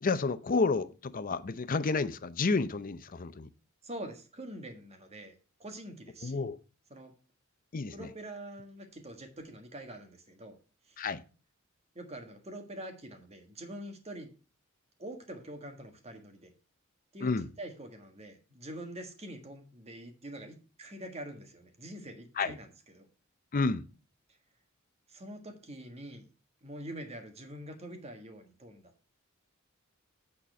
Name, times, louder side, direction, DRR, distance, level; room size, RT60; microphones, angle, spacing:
voice 1, 0.0-3.5 6.2-6.6 7.7-8.1 11.0-11.2 17.2-17.5 22.4-22.5 23.5-23.8, left 4 dB, 40° left, 0.6 m, -30 dB
voice 2, 3.8-5.3 5.6-6.4 6.9-7.1 7.9-10.6 10.8-11.0 11.9-14.3 15.0-16.5 17.1-23.1 25.1-26.2 26.6-28.9, right 1 dB, 30° right, 1.6 m, -45 dB
8.7 x 4.3 x 6.5 m
head